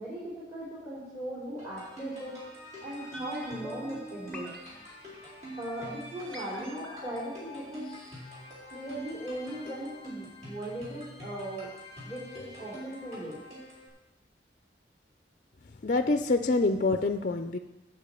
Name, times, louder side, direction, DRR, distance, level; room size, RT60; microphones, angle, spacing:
voice 1, 0.0-2.4 2.8-4.5 5.0-5.3 5.6-7.9 8.7-11.7 12.0-13.4, right 1 dB, 15° right, -9 dB, 3.0 m, -38 dB
sound 1, 1.6-13.9, equal, 40° right, 4.5 m, -46 dB
sound 2, 3.1-9.2 9.4-9.5, left 1 dB, 5° left, 1.4 m, -47 dB
voice 2, 15.8-17.6, left 3 dB, 45° left, 8 dB, 0.5 m, -26 dB
9.6 x 5.8 x 8.3 m, 1.0 s
head